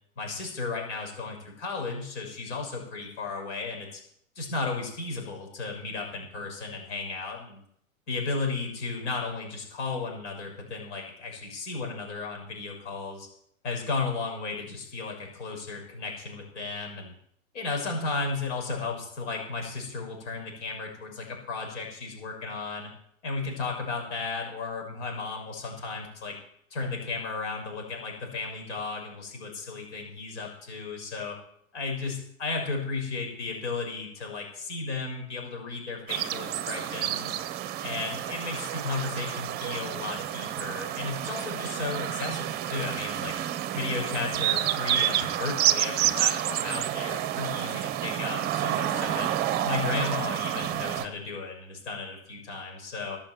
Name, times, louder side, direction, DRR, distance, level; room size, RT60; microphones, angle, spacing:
voice 1, 0.2-4.0 4.3-7.6 8.1-13.3 13.6-17.1 17.5-22.9 23.2-26.4 26.7-31.4 31.7-37.4 37.8-43.3 43.7-49.3 49.6-53.2, left 4 dB, 60° left, 1 dB, 6.2 m, -34 dB
sound 1, 36.1-51.0, right 12 dB, 25° right, 0.9 m, -29 dB
sound 2, 41.0-42.3 42.7-43.4 44.3-44.8 45.2-46.8, left 3 dB, 35° left, 6.2 m, -49 dB
17.5 x 7.3 x 7.6 m, 0.69 s
hypercardioid pair, 130°, 41 cm